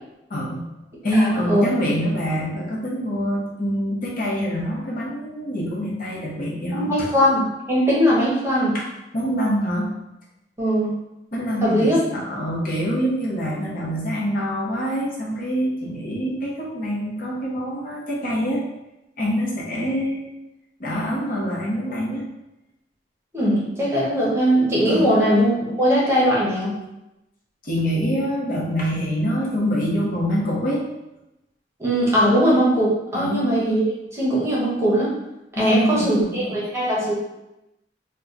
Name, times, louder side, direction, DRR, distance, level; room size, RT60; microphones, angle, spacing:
voice 1, 0.3-0.6 1.0-7.1 8.7-8.9 9.1-9.9 11.3-18.6 19.2-20.2 20.8-22.2 24.9-25.2 27.6-30.8 33.1-33.5 35.5-36.5, equal, 50° left, -4 dB, 0.8 m, -25 dB
voice 2, 1.1-1.7 6.7-8.7 10.6-10.9 11.6-12.0 23.3-26.8 31.8-33.9 34.1-35.1 35.6-37.1, equal, 15° right, -6 dB, 0.9 m, -20 dB
2.9 x 2.2 x 3.7 m, 0.93 s
head